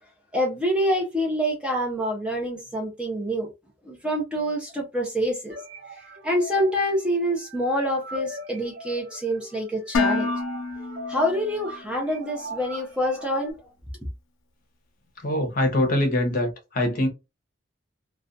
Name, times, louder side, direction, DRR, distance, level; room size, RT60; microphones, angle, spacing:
voice 1, 0.3-3.5 3.9-5.5 6.2-10.3 11.1-13.5, equal, 5° right, 0.5 m, -26 dB
sound 1, 5.5-13.5, right 2 dB, 50° right, 0.9 m, -40 dB
Dishes pots and pans, 9.9-12.0, left 4 dB, 85° left, 0.5 m, -28 dB
voice 2, 15.2-17.1, left 1 dB, 45° left, 0.8 m, -23 dB
2.4 x 2.2 x 2.5 m
head